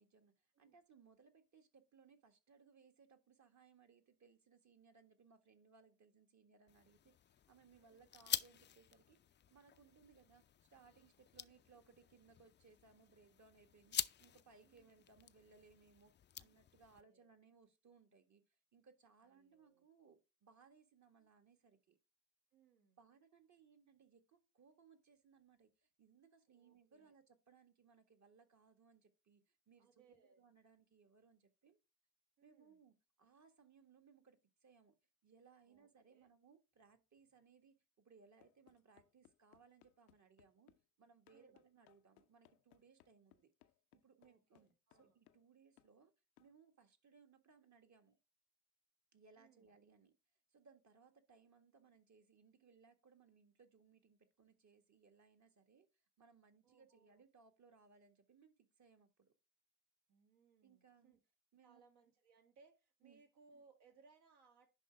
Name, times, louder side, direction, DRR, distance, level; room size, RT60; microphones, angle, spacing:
voice 1, 0.0-7.1 7.5-22.0 23.0-31.8 32.4-35.0 35.2-40.7 41.0-43.5 43.9-44.7 45.0-46.1 46.4-48.2 49.1-50.1 50.5-55.9 56.2-59.3 60.6-61.2 61.5-61.8 63.0-63.2, right 5 dB, 45° right, 1.7 m, -67 dB
sound 1, 6.7-17.0, left 9 dB, 30° left, 0.4 m, -48 dB
voice 2, 14.6-15.0 16.9-17.3 19.3-19.9 21.2-21.3 22.5-23.0 26.5-27.1 29.8-30.4 32.4-32.8 35.7-36.3 41.3-41.6 44.2-45.2 49.3-49.7 56.6-57.2 60.1-61.2 61.6-64.7, right 4 dB, 70° right, 2.0 m, -70 dB
sound 2, 38.4-40.8 41.3-45.5 45.8-46.0 46.4-46.5, left 14 dB, 85° left, 0.5 m, -70 dB
10.5 x 3.7 x 3.5 m
hypercardioid pair, 45°, 41 cm